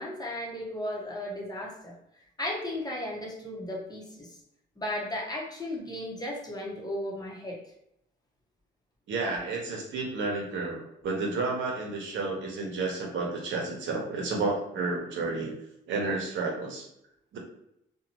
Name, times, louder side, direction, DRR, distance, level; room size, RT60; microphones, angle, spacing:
voice 1, 0.0-1.9 2.4-4.3 4.8-7.6, left 1 dB, 20° left, -2 dB, 0.8 m, -35 dB
voice 2, 9.1-15.5 15.9-16.9 17.3-17.4, right 3 dB, 70° right, -1 dB, 0.9 m, -31 dB
2.7 x 2.2 x 2.9 m, 0.80 s
cardioid pair, 90°, 20 cm